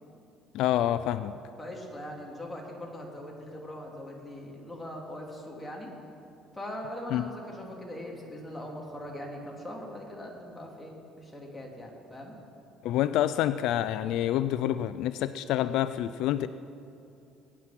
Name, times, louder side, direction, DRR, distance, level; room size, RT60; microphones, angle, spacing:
voice 1, 0.5-1.3 7.1-7.2 12.8-16.5, left 12 dB, 70° left, 13 dB, 0.4 m, -27 dB
voice 2, 1.6-5.9 6.5-12.3, left 1 dB, 5° left, -2 dB, 3.0 m, -41 dB
21.5 x 9.6 x 6.0 m, 2.6 s
cardioid pair, 120°, 0 cm